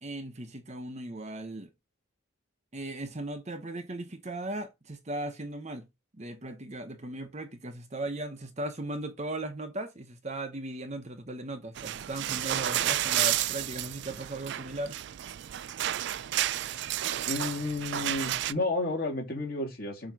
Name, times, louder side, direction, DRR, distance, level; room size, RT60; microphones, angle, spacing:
voice 1, 0.0-1.7 2.7-5.9 6.1-15.0, right 1 dB, 30° right, 1.0 m, -37 dB
sound 1, 11.8-18.5, right 12 dB, 55° right, 0.3 m, -31 dB
voice 2, 17.2-20.1, left 2 dB, 45° left, 2.5 m, -32 dB
7.5 x 3.1 x 5.3 m
head